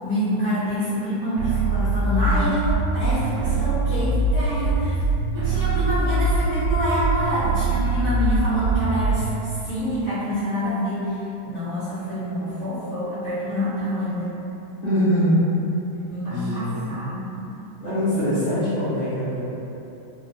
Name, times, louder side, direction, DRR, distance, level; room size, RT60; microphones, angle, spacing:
voice 1, 0.0-5.0 5.3-11.2 11.4-14.4 16.1-17.4, equal, 80° left, -15 dB, 0.7 m, -27 dB
sound 1, 1.4-9.4, right 2 dB, 80° right, 1.7 m, -23 dB
voice 2, 14.8-15.4 16.3-17.0 17.8-19.4, equal, 50° left, -16 dB, 1.6 m, -23 dB
5.1 x 2.2 x 2.3 m, 3.0 s
omnidirectional pair, 3.4 m